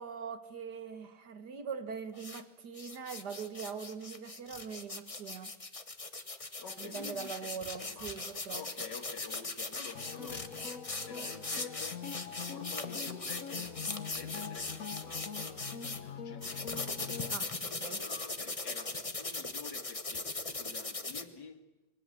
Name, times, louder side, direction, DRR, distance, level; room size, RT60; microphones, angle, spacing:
voice 1, 0.0-5.5 6.8-8.6 17.3-18.0, right 6 dB, 70° right, 2.2 m, -42 dB
sound 1, 2.1-2.4 2.7-16.0 16.4-21.2, left 3 dB, 20° left, 1.4 m, -40 dB
voice 2, 6.6-8.1 8.5-17.4 17.9-21.7, left 6 dB, 90° left, 2.7 m, -49 dB
sound 2, 9.9-17.3, left 7 dB, 55° left, 1.5 m, -43 dB
28.5 x 23.0 x 7.8 m
omnidirectional pair, 1.8 m